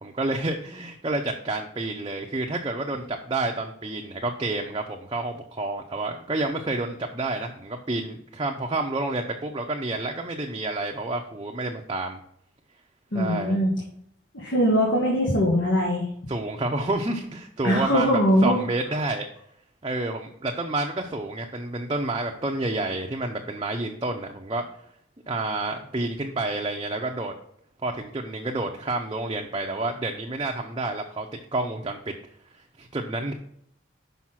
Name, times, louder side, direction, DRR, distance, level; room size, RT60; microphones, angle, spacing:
voice 1, 0.0-12.2 13.1-13.6 16.3-18.1 18.4-19.3 19.8-24.7 25.3-27.3 27.8-31.3 31.5-32.1 32.8-33.3, right 2 dB, 25° right, 1 dB, 0.6 m, -29 dB
voice 2, 13.1-13.7 14.3-16.1 17.6-18.6, equal, 80° left, -2 dB, 1.6 m, -21 dB
6.1 x 5.4 x 5.7 m, 0.71 s
head